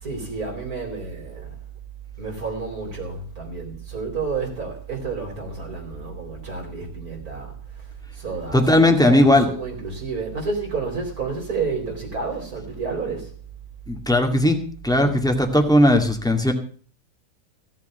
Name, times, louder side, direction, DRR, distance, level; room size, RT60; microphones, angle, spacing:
voice 1, 0.0-1.5 2.2-7.5 8.2-13.3 14.9-15.2, right 4 dB, 70° right, 0 dB, 4.6 m, -30 dB
voice 2, 8.5-9.5 13.9-14.6 14.8-16.5, left 1 dB, ahead, 3 dB, 2.1 m, -17 dB
16.5 x 7.6 x 7.8 m, 0.43 s
omnidirectional pair, 1.6 m